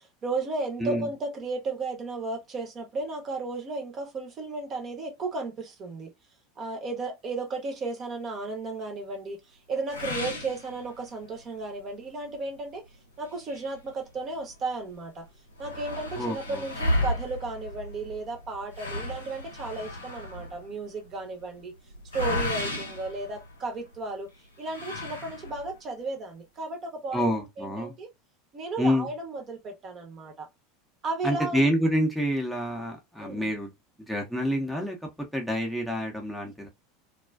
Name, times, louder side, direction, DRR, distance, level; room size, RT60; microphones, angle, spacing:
voice 1, 0.0-6.1 6.6-9.4 9.7-12.8 13.2-15.2 15.6-21.7 22.1-24.3 24.6-28.1 28.5-30.5 31.0-31.7 33.2-33.5, right 3 dB, 35° right, 0.8 m, -34 dB
sound 1, 9.9-11.3 11.8-11.9 12.3-12.4 13.2-14.6 14.9-15.0 15.2-23.9 24.6-25.8, left 1 dB, 85° left, 0.7 m, -34 dB
voice 2, 16.2-16.7 27.1-27.9 28.8-29.1 31.2-33.7 34.1-35.0 35.3-36.7, equal, ahead, 0.7 m, -27 dB
2.3 x 2.3 x 2.3 m
figure-of-eight pair, 80°, 0 cm